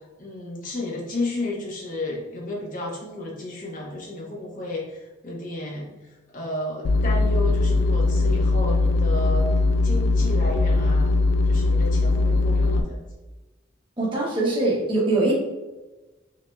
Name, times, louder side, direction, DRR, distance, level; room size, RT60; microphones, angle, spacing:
voice 1, 0.2-5.9 6.3-9.5 9.8-11.2 11.4-13.0, left 2 dB, 45° left, -3 dB, 1.1 m, -32 dB
sound 1, 6.8-12.8, left 3 dB, 85° left, 0.3 m, -20 dB
voice 2, 14.0-15.3, right 2 dB, 25° right, -6 dB, 1.0 m, -22 dB
6.0 x 2.7 x 2.3 m, 1.1 s
head